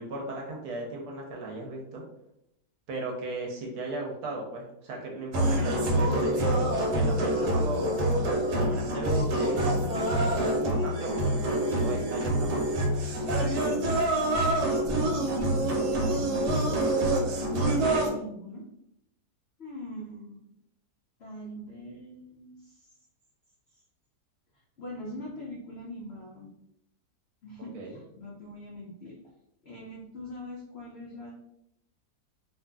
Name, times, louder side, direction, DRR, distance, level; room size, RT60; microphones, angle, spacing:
voice 1, 0.0-2.0 2.9-12.8 27.7-28.0, right 2 dB, 70° right, 0 dB, 1.0 m, -37 dB
sound 1, 5.3-18.1, right 1 dB, 85° right, 1.2 m, -26 dB
voice 2, 13.6-18.6 19.6-20.4 21.2-22.9 24.8-26.5 27.4-29.2 29.6-31.3, left 1 dB, 80° left, -3 dB, 0.6 m, -43 dB
2.8 x 2.4 x 2.2 m, 0.80 s
omnidirectional pair, 1.8 m